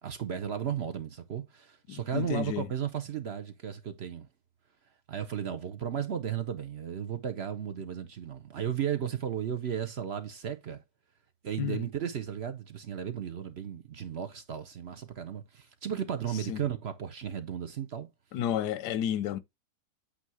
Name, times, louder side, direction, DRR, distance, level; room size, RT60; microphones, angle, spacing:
voice 1, 0.0-4.3 5.1-10.8 11.4-18.1, right 9 dB, 55° right, 0.8 m, -35 dB
voice 2, 1.9-2.7 11.6-11.9 16.5-16.6 18.3-19.4, left 10 dB, 90° left, 1.3 m, -31 dB
8.4 x 2.8 x 4.6 m
omnidirectional pair, 1.7 m